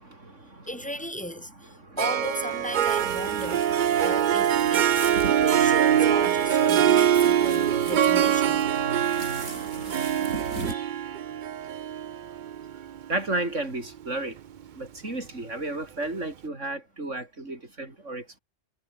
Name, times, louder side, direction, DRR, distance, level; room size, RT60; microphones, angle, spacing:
voice 1, 0.7-5.0 5.4-8.6, equal, 5° left, 4.6 m, -36 dB
Harp, 2.0-13.4, right 10 dB, 55° right, 0.5 m, -23 dB
sound 1, 2.9-10.7, right 2 dB, 85° right, 6.4 m, -38 dB
voice 2, 13.1-14.3 14.8-18.4, right 2 dB, 70° right, 5.1 m, -32 dB
omnidirectional pair, 1.3 m